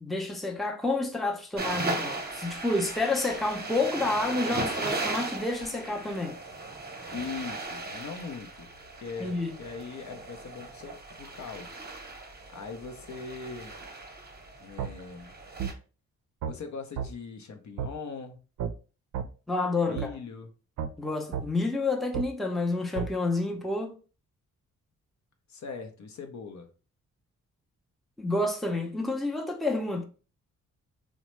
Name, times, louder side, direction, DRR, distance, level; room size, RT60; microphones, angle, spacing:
voice 1, 0.0-6.4 9.2-9.6 19.5-20.1 21.0-24.0 28.2-30.0, left 2 dB, ahead, 0.6 m, -29 dB
sound 1, 1.6-15.7, right 2 dB, 30° right, 0.8 m, -37 dB
voice 2, 7.1-8.7 9.0-11.7 12.5-13.7 14.6-15.3 16.5-18.4 19.8-20.5 25.5-26.7, left 5 dB, 60° left, 0.7 m, -40 dB
sound 2, 14.8-14.9 15.6-15.7 16.4-16.6 17.0-17.1 17.8-17.9 18.6-18.7 19.1-19.3 20.0-20.1 20.8-20.9 21.3-21.5 22.1-22.3 23.0-23.1, right 8 dB, 65° right, 0.5 m, -31 dB
3.0 x 2.1 x 3.0 m
cardioid pair, 60°, 33 cm